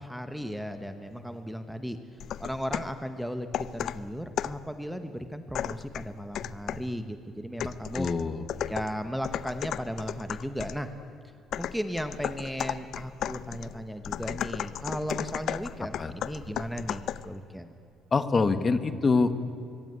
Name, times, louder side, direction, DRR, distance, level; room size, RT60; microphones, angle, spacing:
voice 1, 0.0-2.0 2.4-8.1 8.7-10.9 11.6-17.7, equal, ahead, 8 dB, 1.0 m, -36 dB
sound 1, 2.2-3.0 3.5-4.7 5.5-6.9 7.6-10.9 11.5-17.3, left 10 dB, 50° left, 0.6 m, -35 dB
voice 2, 7.9-8.4 16.0-16.1 18.1-19.3, left 4 dB, 20° left, 11 dB, 1.2 m, -25 dB
25.0 x 23.5 x 9.7 m, 2.8 s
cardioid pair, 175°, 0 cm